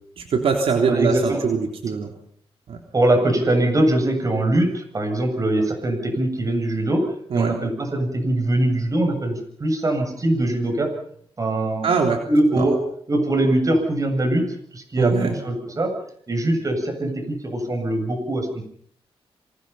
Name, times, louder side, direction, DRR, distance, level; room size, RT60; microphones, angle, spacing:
voice 1, 0.2-2.1 2.7-2.8 7.3-7.5 11.8-12.2 12.5-12.8 15.0-15.3, right 5 dB, 75° right, 3 dB, 3.6 m, -22 dB
voice 2, 0.8-1.4 2.9-10.9 11.4-11.9 12.2-12.8 13.1-14.4 14.7-15.9 16.3-18.7, right 1 dB, 35° right, 5 dB, 7.7 m, -22 dB
27.5 x 25.5 x 5.8 m, 0.63 s
wide cardioid pair, 110°, 10 cm